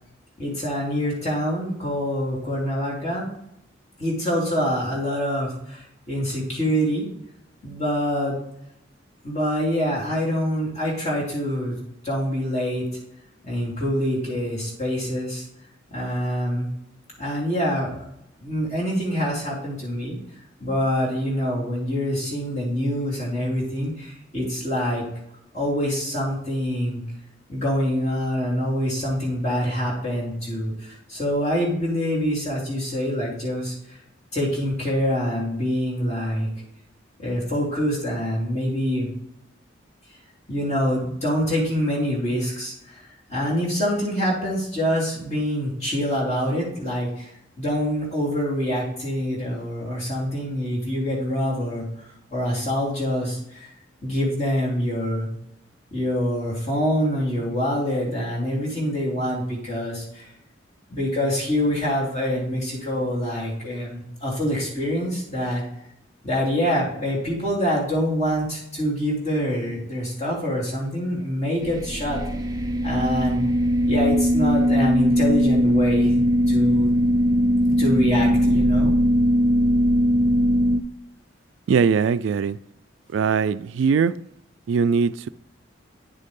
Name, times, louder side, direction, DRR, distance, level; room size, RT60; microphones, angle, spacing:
voice 1, 0.4-3.3 4.0-7.1 7.6-8.4 9.2-11.8 12.0-12.9 13.4-15.4 15.9-16.7 17.2-18.0 18.4-20.2 20.6-25.0 25.5-27.0 27.5-34.0 34.3-36.5 37.2-39.1 40.5-43.0 43.3-51.9 52.3-53.7 54.0-55.3 55.9-60.3 60.9-65.6 66.2-72.2 72.8-73.4 73.8-76.1 76.5-76.9 77.8-79.0, equal, 35° left, 3.4 m, -25 dB
sound 1, 71.6-80.8, equal, 20° right, 0.5 m, -20 dB
voice 2, 81.7-82.6 83.1-84.2 84.7-85.3, right 6 dB, 75° right, 0.3 m, -21 dB
10.0 x 6.5 x 3.7 m
head